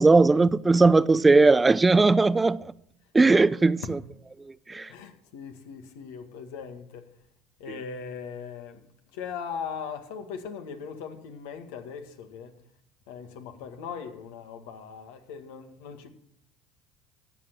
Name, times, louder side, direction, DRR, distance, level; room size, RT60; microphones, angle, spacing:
voice 1, 0.0-2.6 3.1-3.8 4.7-4.9, right 3 dB, 20° right, 0.5 m, -18 dB
voice 2, 4.9-7.1 7.6-8.8 9.1-12.5 13.1-16.1, left 6 dB, 80° left, 1.8 m, -39 dB
14.0 x 8.4 x 6.1 m
hypercardioid pair, 80°, 0 cm